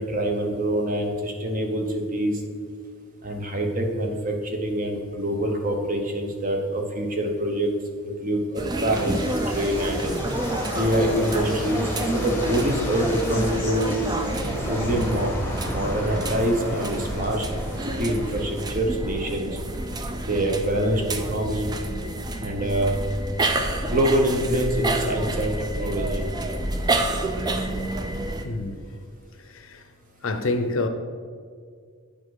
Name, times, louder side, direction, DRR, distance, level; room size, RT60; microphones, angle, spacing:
voice 1, 0.0-2.3 3.2-7.7 8.0-10.1 10.7-13.9 14.7-15.3 15.6-17.5 18.0-19.5 20.3-21.7 22.4-23.0 23.9-26.2, right 1 dB, 35° right, 0.9 m, -25 dB
sound 1, 8.5-28.4, right 2 dB, 15° right, 0.4 m, -29 dB
sound 2, 8.9-18.6, left 1 dB, 10° left, 0.9 m, -32 dB
sound 3, 14.3-19.0, right 2 dB, 80° right, 0.6 m, -38 dB
voice 2, 28.4-28.8 29.7-29.8 30.2-30.9, left 2 dB, 60° left, 0.6 m, -26 dB
8.6 x 5.1 x 4.8 m
head